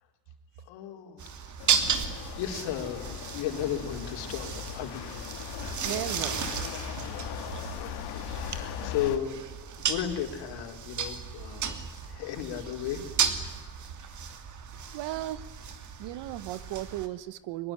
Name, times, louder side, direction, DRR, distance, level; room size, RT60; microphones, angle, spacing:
voice 1, 0.7-1.6 2.3-5.1 7.8-9.4 9.9-13.0 14.1-14.2, left 10 dB, 75° left, 4 dB, 4.4 m, -35 dB
sound 1, 1.2-17.1, right 7 dB, 40° right, 2.9 m, -34 dB
sound 2, 1.6-9.2, left 9 dB, 60° left, 2.2 m, -39 dB
voice 2, 5.8-6.5 14.9-15.5 16.0-17.7, right 15 dB, 70° right, 16 dB, 1.5 m, -35 dB
23.0 x 22.0 x 10.0 m, 1.2 s
cardioid pair, 140°, 44 cm